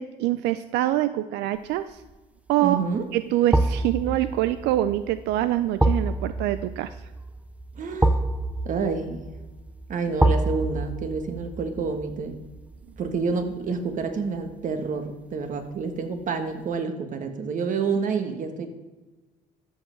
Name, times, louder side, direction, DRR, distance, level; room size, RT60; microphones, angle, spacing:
voice 1, 0.0-2.0 2.5-2.8 3.1-7.0, right 14 dB, 90° right, 13 dB, 0.5 m, -25 dB
sound 1, 1.7-2.1 3.5-14.5 14.8-15.0, right 2 dB, 10° right, 0.5 m, -28 dB
voice 2, 2.6-3.0 7.8-8.1 8.6-9.2 9.9-12.4 13.0-18.7, right 5 dB, 50° right, 7 dB, 1.6 m, -28 dB
13.0 x 5.6 x 7.7 m, 1.2 s
cardioid pair, 110°, 17 cm